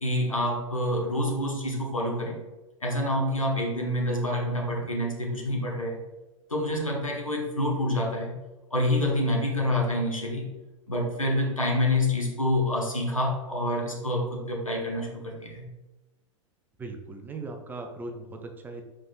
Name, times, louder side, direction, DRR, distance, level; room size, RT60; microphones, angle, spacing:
voice 1, 0.0-2.4 2.8-6.0 6.5-8.3 8.7-10.5 10.9-15.7, left 1 dB, 85° left, -1 dB, 0.9 m, -27 dB
voice 2, 16.8-18.8, right 3 dB, 10° right, 4 dB, 0.4 m, -38 dB
4.9 x 3.5 x 2.4 m, 1.1 s
figure-of-eight pair, 95°, 17 cm